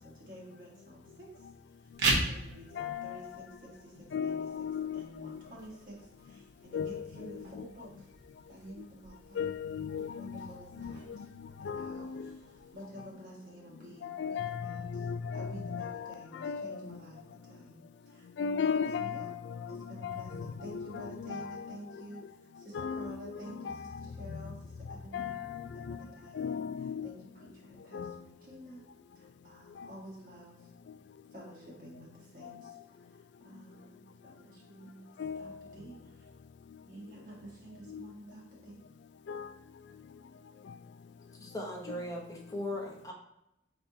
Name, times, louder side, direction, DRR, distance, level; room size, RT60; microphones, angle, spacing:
voice 1, 0.0-4.5 4.9-8.1 8.5-9.5 10.2-11.3 11.6-18.4 18.6-19.3 19.7-25.4 25.7-28.8 29.1-30.7 31.3-36.3 36.9-38.8 39.2-39.4 39.9-40.0, right 1 dB, 50° right, 1.4 m, -51 dB
sound 1, 1.8-12.8, right 2 dB, 65° right, 1.2 m, -40 dB
voice 2, 2.8-3.2 4.1-5.4 6.7-7.3 9.4-10.5 10.8-11.2 11.6-12.3 14.0-16.8 18.4-21.8 22.7-23.9 24.3-24.4 25.1-26.0 26.4-27.1 27.9-28.1 35.2-35.5 37.9-38.0 39.3-39.5, left 6 dB, 75° left, 0.3 m, -36 dB
voice 3, 41.4-43.1, left 1 dB, 20° left, 0.8 m, -38 dB
5.8 x 3.4 x 2.7 m
head